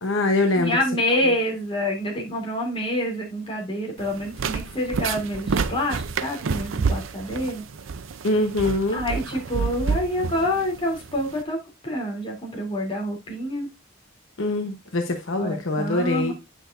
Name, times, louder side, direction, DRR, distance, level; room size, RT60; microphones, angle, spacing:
voice 1, 0.0-0.8 8.2-9.0 14.4-16.3, left 2 dB, 75° left, 5 dB, 1.0 m, -23 dB
voice 2, 0.5-7.6 8.9-11.6 11.8-13.7 15.4-16.3, left 1 dB, 30° left, -2 dB, 3.0 m, -27 dB
sound 1, 4.0-11.4, right 5 dB, 85° right, 0.6 m, -29 dB
8.7 x 6.2 x 2.6 m, 0.23 s
head